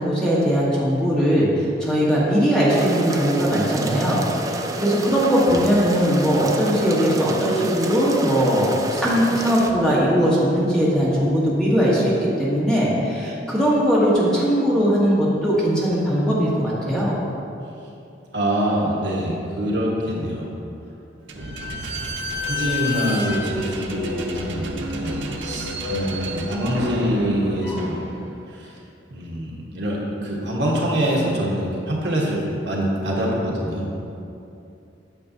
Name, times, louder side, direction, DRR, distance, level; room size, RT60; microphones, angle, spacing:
voice 1, 0.0-4.2 4.5-17.2, equal, 5° left, -8 dB, 1.3 m, -20 dB
sound 1, 2.7-9.7, right 2 dB, 20° right, 0.3 m, -29 dB
voice 2, 18.3-20.5 21.3-21.6 22.5-28.1 28.5-28.7 29.1-33.9, equal, 65° right, -4 dB, 1.3 m, -25 dB
Slam / Squeak, 21.3-28.6, left 1 dB, 85° right, 0.6 m, -31 dB
sound 2, 22.3-27.9, left 2 dB, 80° left, 1.5 m, -37 dB
8.9 x 6.5 x 2.7 m, 2.7 s
head